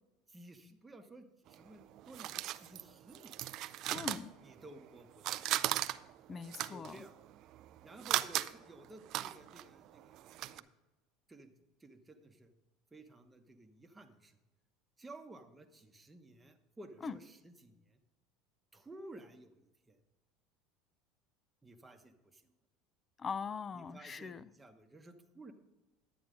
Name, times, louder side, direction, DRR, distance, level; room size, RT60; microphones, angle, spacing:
voice 1, 0.3-3.4 4.4-5.4 6.7-7.1 7.8-10.7 11.3-11.5 11.8-12.5 12.9-14.4 15.0-18.0 18.7-20.0 21.6-22.5 23.7-25.5, right 2 dB, 15° right, 5 dB, 1.1 m, -54 dB
sound 1, 1.5-4.9 5.2-10.6, right 14 dB, 55° right, 0.4 m, -38 dB
voice 2, 3.9-4.3 6.3-7.0 17.0-17.2 23.2-24.5, left 5 dB, 25° left, 17 dB, 0.4 m, -41 dB
11.0 x 8.8 x 3.7 m, 1.0 s
supercardioid pair, 115°, 0 cm